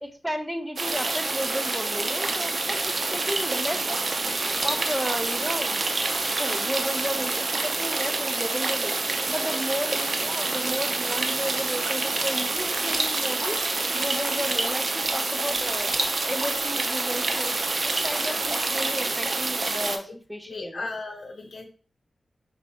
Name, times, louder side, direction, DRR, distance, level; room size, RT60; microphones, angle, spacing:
voice 1, 0.0-3.8 4.6-5.9 6.3-8.9 9.3-13.6 13.9-15.9 16.2-20.9, equal, 5° right, 7 dB, 0.6 m, -33 dB
sound 1, 0.8-20.0, right 3 dB, 55° right, 0.6 m, -27 dB
voice 2, 18.2-18.5 20.1-20.2 20.4-21.7, left 3 dB, 65° left, 3 dB, 0.9 m, -36 dB
4.4 x 4.0 x 2.8 m, 0.41 s
wide cardioid pair, 110°, 0 cm